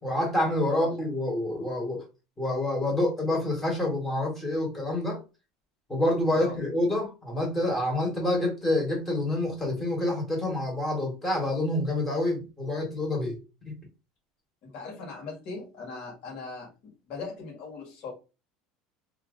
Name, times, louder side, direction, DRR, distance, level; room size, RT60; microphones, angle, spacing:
voice 1, 0.0-2.0 2.4-5.2 5.9-13.4 13.6-13.7, left 1 dB, 10° left, 1.3 m, -27 dB
voice 2, 14.6-18.1, left 4 dB, 45° left, 1.5 m, -39 dB
2.7 x 2.5 x 3.6 m
cardioid pair, 160°, 2 cm